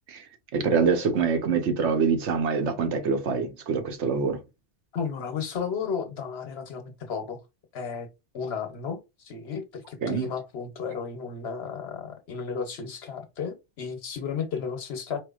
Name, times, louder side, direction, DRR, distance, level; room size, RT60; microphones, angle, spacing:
voice 1, 0.5-4.4 10.0-10.3, right 5 dB, 80° right, 1.1 m, -25 dB
voice 2, 4.9-7.4 7.7-8.1 8.3-9.0 9.2-15.2, left 6 dB, 65° left, 1.1 m, -33 dB
4.5 x 2.6 x 2.4 m
omnidirectional pair, 1.2 m